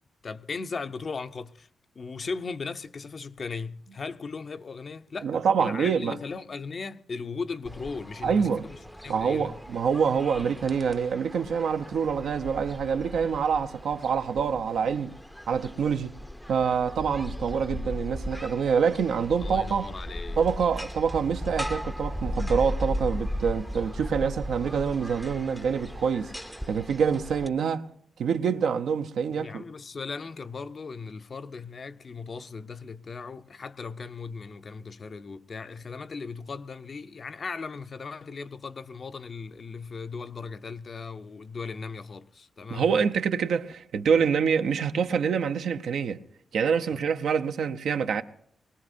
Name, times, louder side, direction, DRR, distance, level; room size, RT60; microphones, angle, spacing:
voice 1, 0.2-1.7 1.9-9.6 19.4-20.4 29.3-43.0 46.9-47.0, left 4 dB, 45° left, 0.6 m, -37 dB
voice 2, 5.2-6.2 8.2-8.7 9.1-15.1 15.5-16.1 16.5-19.9 20.4-26.3 26.7-27.9 28.2-29.6 42.7-46.2 46.5-48.2, right 6 dB, 85° right, 0.7 m, -26 dB
sound 1, 7.7-27.5, left 1 dB, ahead, 0.5 m, -37 dB
22.5 x 18.5 x 2.6 m
cardioid pair, 105°, 0 cm